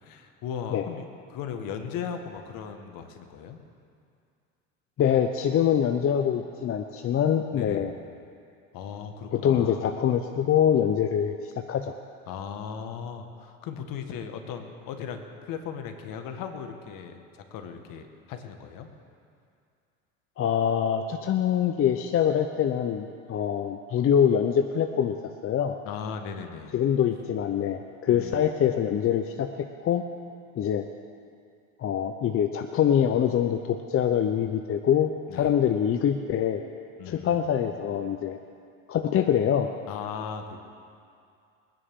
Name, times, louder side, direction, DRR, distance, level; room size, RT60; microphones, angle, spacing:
voice 1, 0.0-3.6 7.5-7.9 8.7-9.9 12.3-17.2 17.5-18.9 25.8-26.8 28.1-28.5 35.3-35.6 37.0-37.4 39.9-40.6, left 7 dB, 55° left, 6 dB, 1.7 m, -37 dB
voice 2, 5.0-7.9 9.3-11.9 20.4-25.2 25.4-25.8 26.7-30.0 30.6-30.9 31.8-36.6 37.1-38.4 38.9-39.7, left 9 dB, 35° left, 6 dB, 0.7 m, -24 dB
22.5 x 10.0 x 3.7 m, 2.4 s
hypercardioid pair, 85°, 40 cm